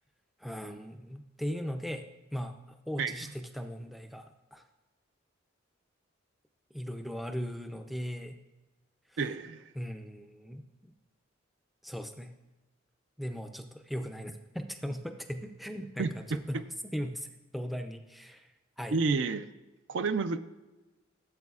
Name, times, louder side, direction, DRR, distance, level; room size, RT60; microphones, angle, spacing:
voice 1, 0.4-2.1 2.3-4.6 6.7-8.4 9.7-10.9 11.8-12.3 13.2-17.3 17.5-19.0, equal, ahead, 6 dB, 0.4 m, -38 dB
voice 2, 3.0-3.3 9.2-9.6 16.0-16.4 18.9-19.5 19.9-20.4, right 4 dB, 65° right, 11 dB, 0.4 m, -30 dB
13.5 x 7.5 x 2.4 m, 1.1 s
head